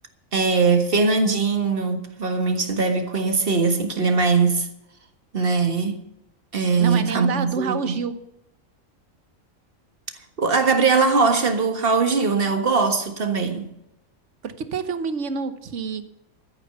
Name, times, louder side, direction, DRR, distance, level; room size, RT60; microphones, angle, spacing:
voice 1, 0.3-4.7 5.3-6.0 6.5-8.0 10.4-13.7, right 4 dB, 45° right, 1.7 m, -21 dB
voice 2, 6.8-8.1 14.4-16.0, right 5 dB, 65° right, 1.4 m, -28 dB
14.0 x 8.7 x 6.8 m
omnidirectional pair, 1.3 m